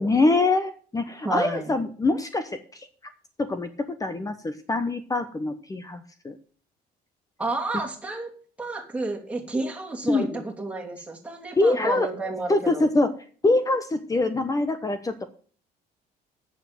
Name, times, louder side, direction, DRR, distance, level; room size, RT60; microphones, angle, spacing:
voice 1, 0.0-2.8 3.4-3.7 4.0-6.4 10.1-10.4 11.6-12.1 12.5-13.1 13.4-15.1, left 2 dB, 20° left, 10 dB, 1.0 m, -24 dB
voice 2, 1.2-1.7 7.4-8.3 8.6-12.9, right 2 dB, 10° right, -1 dB, 2.9 m, -31 dB
8.5 x 7.1 x 7.5 m, 0.43 s
cardioid pair, 110°, 17 cm